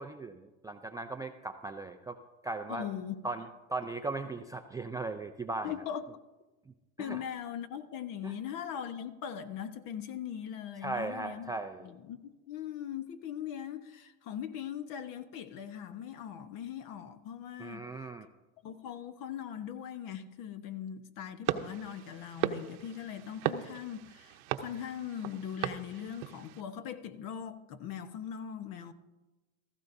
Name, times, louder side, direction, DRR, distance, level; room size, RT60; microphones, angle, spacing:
voice 1, 0.0-2.2 2.4-2.9 3.2-3.4 3.7-5.7 7.0-7.2 8.2-8.3 10.8-11.9 17.6-18.3, right 3 dB, 10° right, 0.4 m, -38 dB
voice 2, 2.7-3.2 5.6-6.0 7.0-11.5 11.8-17.9 18.6-28.9, left 9 dB, 50° left, 1.1 m, -40 dB
sound 1, 21.5-26.6, right 13 dB, 80° right, 0.9 m, -37 dB
16.5 x 14.5 x 2.7 m
supercardioid pair, 120°, 42 cm